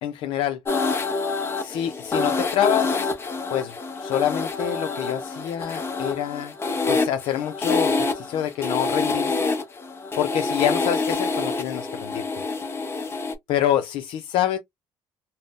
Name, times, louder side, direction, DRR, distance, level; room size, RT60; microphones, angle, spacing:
voice 1, 0.0-0.6 1.6-3.1 3.5-6.5 6.9-9.5 10.2-12.3 13.5-14.6, left 11 dB, 80° left, 0.4 m, -26 dB
sound 1, 0.7-13.3, left 3 dB, 25° left, 0.7 m, -27 dB
2.6 x 2.0 x 3.5 m
cardioid pair, 105°, 9 cm